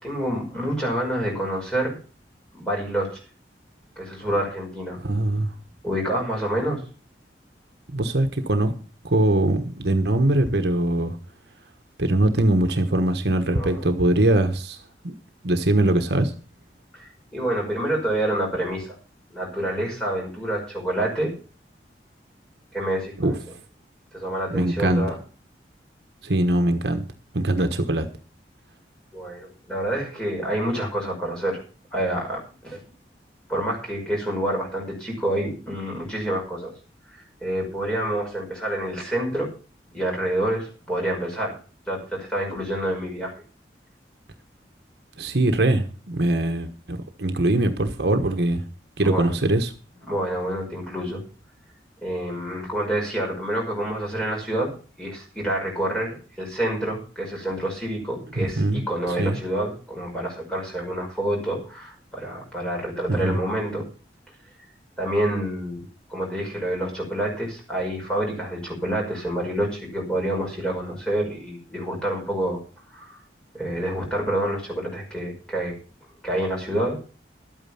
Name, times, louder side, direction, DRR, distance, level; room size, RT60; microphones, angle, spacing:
voice 1, 0.0-2.0 2.5-3.2 4.0-5.0 5.8-6.8 13.5-13.9 16.9-19.0 19.3-21.3 22.7-23.4 24.1-25.2 29.1-31.6 31.9-32.8 33.5-36.7 37.1-39.5 39.9-41.6 41.9-43.4 49.0-49.3 50.1-51.2 52.0-63.8 65.0-65.8 66.1-72.6 72.9-73.2 73.5-75.8 76.2-77.0, right 1 dB, 5° left, -2 dB, 5.6 m, -27 dB
voice 2, 5.0-5.5 7.9-8.7 9.0-11.2 12.0-15.1 15.4-16.3 23.2-23.3 24.5-25.1 26.2-27.0 27.3-28.1 45.2-48.6 49.0-49.7 58.4-58.8 59.1-59.4 63.1-63.4, right 1 dB, 65° right, 7 dB, 1.3 m, -22 dB
12.5 x 9.0 x 5.8 m, 0.37 s
head